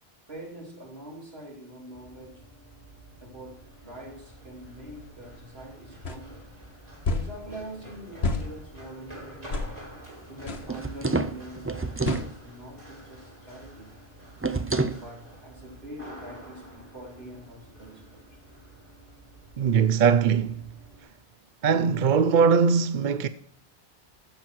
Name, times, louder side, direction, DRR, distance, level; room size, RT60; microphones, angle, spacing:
voice 1, 0.3-2.4 3.2-6.5 7.1-9.9 10.3-14.0 14.9-18.4, right 1 dB, 70° right, 3.4 m, -44 dB
Run, 1.9-21.0, right 1 dB, 40° right, 3.6 m, -48 dB
sound 1, 6.0-6.2 7.0-7.3 8.2-8.5 9.5-9.7 10.5-10.7 12.1-12.3, left 3 dB, 80° left, 1.5 m, -28 dB
sound 2, 10.6-12.3 14.4-15.0, right 3 dB, 20° right, 0.4 m, -28 dB
voice 2, 19.6-20.6 21.6-23.3, right 6 dB, 55° right, 0.6 m, -21 dB
15.0 x 7.3 x 4.6 m
omnidirectional pair, 1.1 m